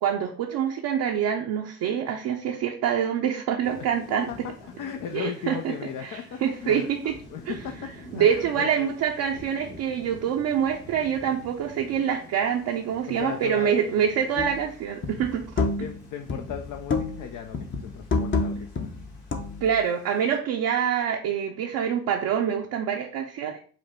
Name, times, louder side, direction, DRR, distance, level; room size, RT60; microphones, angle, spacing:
voice 1, 0.0-4.3 5.1-5.7 6.0-7.1 7.5-7.6 8.1-15.4 19.6-23.6, right 8 dB, 75° right, 1 dB, 0.6 m, -26 dB
Thunder / Rain, 3.6-20.4, equal, 85° left, 1.5 m, -48 dB
voice 2, 4.3-6.9 7.3-8.9 13.1-13.8 15.6-18.9, left 8 dB, 65° left, 5 dB, 0.5 m, -37 dB
sound 1, 14.4-14.7 15.0-16.0 16.3-17.3 17.5-19.8, left 3 dB, 35° left, 0.8 m, -29 dB
5.0 x 2.1 x 4.3 m, 0.43 s
supercardioid pair, 50°, 34 cm